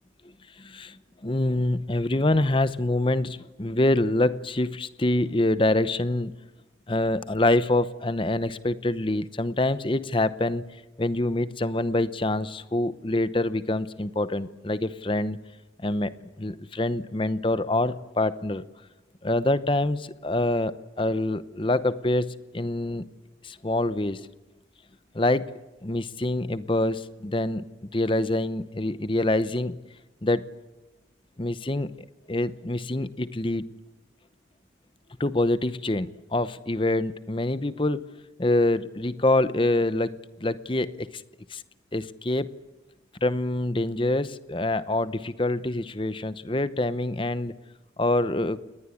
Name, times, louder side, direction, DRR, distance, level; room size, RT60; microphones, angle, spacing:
voice 1, 0.6-6.3 6.9-10.6 11.0-15.4 15.8-16.1 16.4-18.6 19.2-23.0 23.4-24.3 25.1-25.5 25.8-29.8 30.2-30.4 31.4-31.9 32.3-33.7 35.2-38.0 38.4-41.2 41.5-41.6 41.9-42.5 43.2-47.5 48.0-48.6, left 1 dB, 25° left, 14 dB, 0.8 m, -25 dB
29.0 x 19.5 x 8.6 m, 1.1 s
head